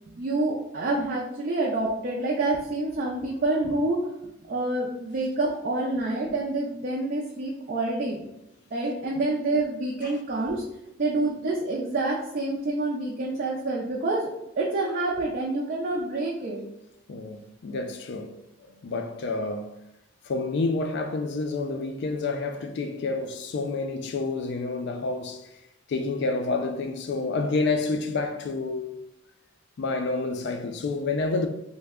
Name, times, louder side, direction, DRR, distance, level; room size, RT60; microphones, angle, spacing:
voice 1, 0.1-4.0 4.5-8.2 8.7-10.6 11.0-14.3 14.6-16.6, right 2 dB, 45° right, 0.4 m, -27 dB
voice 2, 17.1-18.3 18.6-19.7 20.2-25.5 25.9-28.9 29.8-31.5, left 3 dB, 55° left, 0.3 m, -29 dB
3.2 x 2.1 x 3.5 m
head